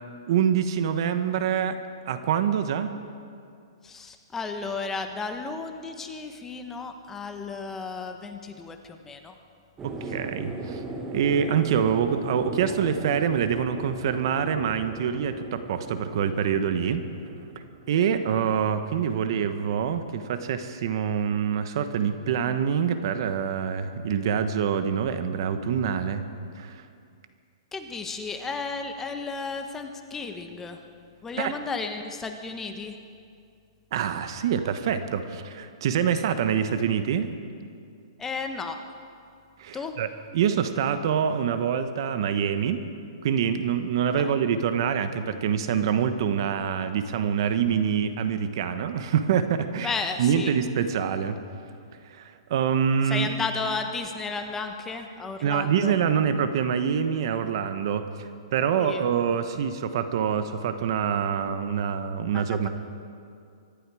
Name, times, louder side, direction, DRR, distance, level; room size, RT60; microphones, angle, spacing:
voice 1, 0.3-1.8 2.1-3.0 9.8-10.8 11.1-17.0 17.9-26.2 26.6-26.8 31.4-31.5 33.9-37.3 39.6-42.8 43.2-49.9 50.2-51.4 52.1-53.3 55.4-58.1 58.5-62.7, right 8 dB, 55° right, 9 dB, 1.1 m, -25 dB
voice 2, 3.8-9.3 18.0-18.5 27.7-30.8 31.2-33.0 38.2-38.8 39.7-40.0 44.1-44.3 49.8-50.5 53.1-56.0 58.8-59.0 62.3-62.4, left 4 dB, 10° left, 6 dB, 1.0 m, -33 dB
sound 1, 9.8-19.5, right 2 dB, 15° right, 1.2 m, -38 dB
24.5 x 11.5 x 4.9 m, 2.4 s
hypercardioid pair, 145°, 3 cm